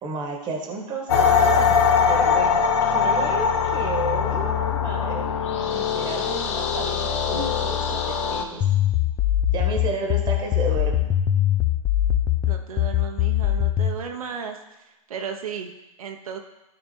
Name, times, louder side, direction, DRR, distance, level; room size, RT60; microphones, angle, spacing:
voice 1, 0.0-1.8 2.1-8.6 9.5-11.1, right 3 dB, 25° right, 2 dB, 1.5 m, -32 dB
sound 1, 1.1-8.4, left 6 dB, 55° left, 1.0 m, -22 dB
sound 2, 8.6-14.0, left 12 dB, 20° left, 0.6 m, -22 dB
voice 2, 12.5-14.6 15.1-15.7 16.0-16.4, right 6 dB, 80° right, 4 dB, 0.9 m, -34 dB
12.5 x 4.1 x 4.5 m, 0.99 s
hypercardioid pair, 135°, 18 cm